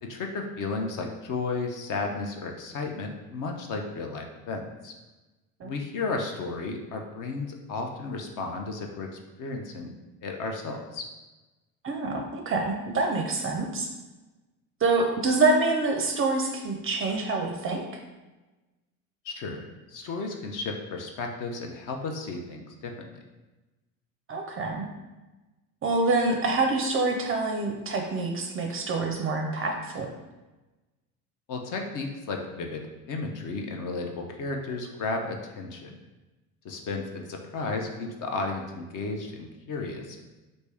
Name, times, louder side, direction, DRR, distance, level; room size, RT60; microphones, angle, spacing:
voice 1, 0.0-4.9 5.6-9.9 10.2-11.1 19.2-19.6 19.9-23.2 31.5-35.9 36.6-40.2, left 3 dB, 45° left, 3 dB, 0.6 m, -33 dB
voice 2, 11.8-13.9 14.8-17.8 24.3-24.9 25.8-30.1, right 3 dB, 30° right, 3 dB, 0.5 m, -26 dB
3.3 x 2.6 x 3.3 m, 1.1 s
hypercardioid pair, 75°, 46 cm